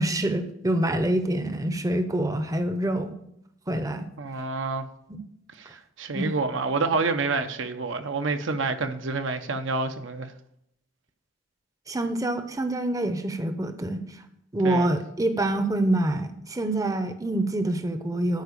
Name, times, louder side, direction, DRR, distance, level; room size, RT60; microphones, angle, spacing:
voice 1, 0.0-3.2 3.7-4.1 5.1-5.2 6.1-6.3 11.9-14.0 14.5-18.4, right 1 dB, 20° right, 0.7 m, -26 dB
voice 2, 4.2-4.9 5.6-10.3 14.6-14.9, right 3 dB, 70° right, 0.8 m, -28 dB
13.0 x 4.9 x 6.7 m
head